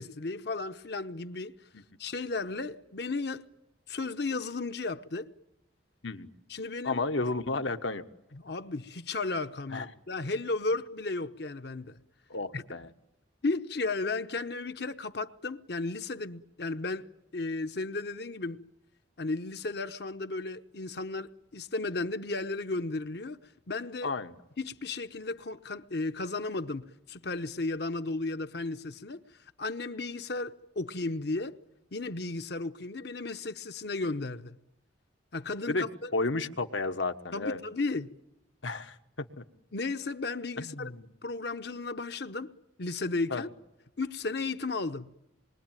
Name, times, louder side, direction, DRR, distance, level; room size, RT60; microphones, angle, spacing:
voice 1, 0.0-1.5 2.0-3.5 3.9-5.3 6.5-7.0 8.3-12.0 12.5-12.6 13.4-17.0 17.3-18.6 19.2-23.4 23.7-24.1 24.6-29.2 29.6-31.6 31.9-34.5 35.3-36.1 37.3-38.2 39.7-40.9 41.2-42.5 42.8-43.5 44.0-45.1, left 3 dB, 55° left, 0.9 m, -34 dB
voice 2, 6.8-8.0 9.7-9.9 12.3-12.9 24.0-24.3 35.7-35.9 36.1-37.6 38.6-39.4 40.6-41.1 43.3-43.4, left 3 dB, 80° left, 1.4 m, -32 dB
27.0 x 23.0 x 9.1 m
head